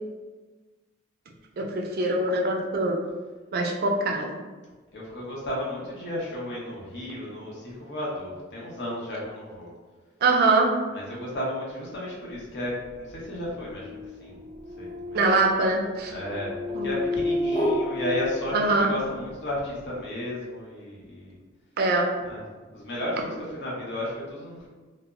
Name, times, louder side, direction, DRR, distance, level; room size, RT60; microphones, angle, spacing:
voice 1, 1.6-3.0 3.5-4.4 10.2-10.8 15.1-16.1 16.7-16.9 18.5-18.9 21.8-22.1, right 2 dB, 50° right, 1 dB, 0.4 m, -23 dB
voice 2, 4.9-9.7 10.9-14.4 14.8-15.3 16.1-16.5 16.8-21.3 22.2-22.4 22.7-24.7, left 1 dB, 60° left, -5 dB, 0.8 m, -33 dB
sound 1, 12.6-19.1, left 1 dB, 20° left, 0.6 m, -31 dB
2.0 x 2.0 x 3.5 m, 1.3 s
head